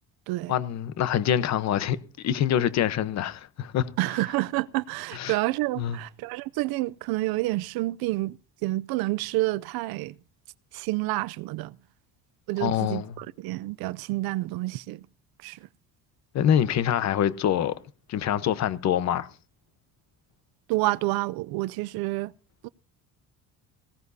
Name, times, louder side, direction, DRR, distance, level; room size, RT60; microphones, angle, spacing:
voice 1, 0.5-3.9 5.1-5.4 5.8-6.0 12.6-13.1 16.3-17.8 18.1-19.3, left 10 dB, 50° left, 1.0 m, -25 dB
voice 2, 4.0-10.1 10.7-11.8 12.5-15.1 15.4-15.6 20.7-22.3 22.6-22.7, right 19 dB, 80° right, 0.6 m, -29 dB
19.0 x 16.5 x 2.7 m
cardioid pair, 150°, 36 cm